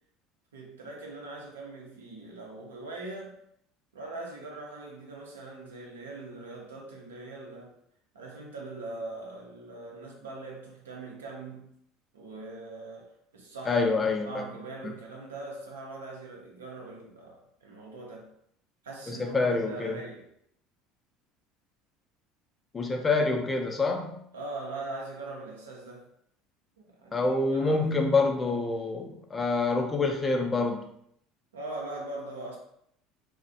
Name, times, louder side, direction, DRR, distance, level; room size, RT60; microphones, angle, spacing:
voice 1, 0.5-3.3 3.9-7.7 8.1-11.7 12.1-13.8 14.2-18.3 18.8-20.3 24.3-26.1 26.8-27.8 31.5-32.6, right 2 dB, 85° right, -2 dB, 0.6 m, -41 dB
voice 2, 13.7-14.4 14.8-14.9 19.1-20.0 22.7-24.2 27.1-30.9, left 3 dB, 25° left, 3 dB, 0.4 m, -27 dB
2.4 x 2.0 x 2.6 m, 0.71 s
hypercardioid pair, 70°, 0 cm